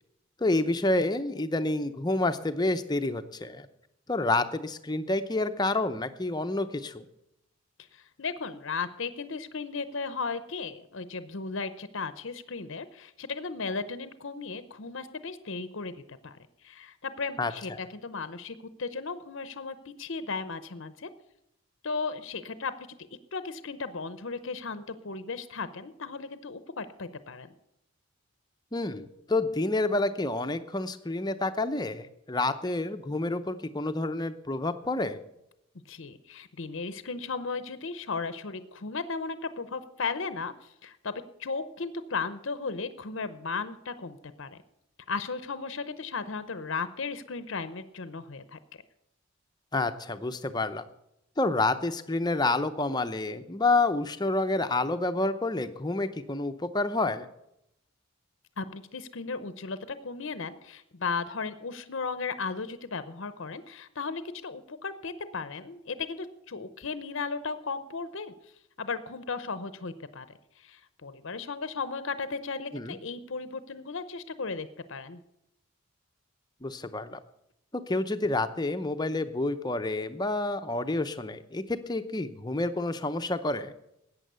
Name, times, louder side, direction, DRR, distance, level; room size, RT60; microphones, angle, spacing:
voice 1, 0.4-3.7 4.1-7.0 17.4-17.5 28.7-35.2 49.7-50.8 51.4-57.2 72.7-73.0 76.6-77.2 77.7-83.7, left 2 dB, 20° left, 9 dB, 0.7 m, -29 dB
voice 2, 7.9-16.4 16.6-21.1 21.8-22.7 23.3-27.5 35.9-44.6 45.1-48.6 58.6-68.3 68.8-70.3 70.6-75.2, left 4 dB, 60° left, 12 dB, 0.7 m, -35 dB
14.0 x 8.9 x 6.8 m, 0.82 s
head